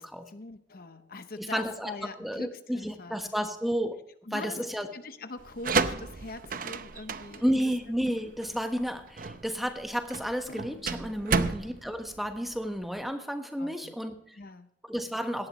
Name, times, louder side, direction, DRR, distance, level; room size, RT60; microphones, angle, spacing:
voice 1, 0.3-3.3 4.3-4.6 4.9-7.4 11.3-11.5 13.6-13.9 14.3-14.7, left 2 dB, 55° left, 10 dB, 0.8 m, -43 dB
Drum, 0.7-2.1 4.6-7.5 10.5-13.3, left 2 dB, 80° left, 2.3 m, -57 dB
voice 2, 1.4-1.9 2.2-4.0 4.3-4.9 7.4-14.4 14.9-15.5, equal, ahead, 6 dB, 1.2 m, -32 dB
sound 1, 5.4-13.0, right 4 dB, 50° right, 0.7 m, -32 dB
17.0 x 12.0 x 3.1 m, 0.68 s
head